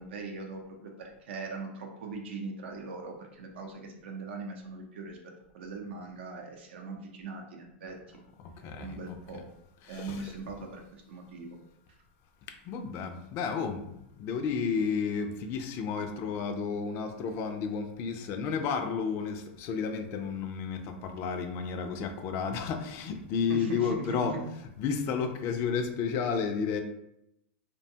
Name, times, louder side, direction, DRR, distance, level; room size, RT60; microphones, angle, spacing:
voice 1, 0.0-5.2 5.5-8.0 8.8-9.4 9.9-11.6 23.5-24.4, right 3 dB, 85° right, 2 dB, 0.6 m, -40 dB
voice 2, 8.4-9.4 9.8-10.4 12.7-24.3 24.8-26.8, left 6 dB, 45° left, 7 dB, 0.3 m, -32 dB
2.6 x 2.2 x 2.7 m, 0.82 s
supercardioid pair, 135°, 6 cm